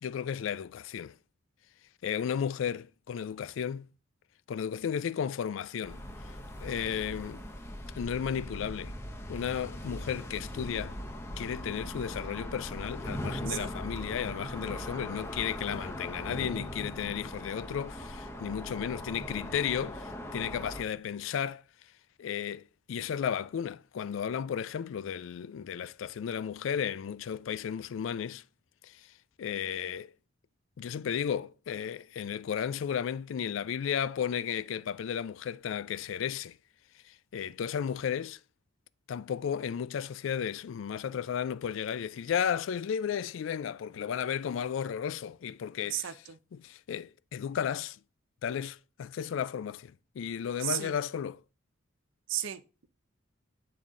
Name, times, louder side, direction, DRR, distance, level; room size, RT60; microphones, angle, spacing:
voice 1, 0.0-1.1 2.0-3.9 4.5-6.0 6.6-7.4 8.0-8.9 9.3-11.0 11.4-21.6 22.2-28.4 28.8-29.1 29.4-30.1 30.8-36.6 37.1-38.4 39.1-46.1 46.5-48.0 48.4-51.4, left 8 dB, 75° left, 0.3 m, -34 dB
sound 1, 5.8-20.8, left 1 dB, 15° left, 0.6 m, -40 dB
voice 2, 45.9-46.4 50.6-50.9 52.3-52.9, right 12 dB, 75° right, 0.6 m, -34 dB
8.6 x 4.0 x 3.6 m
head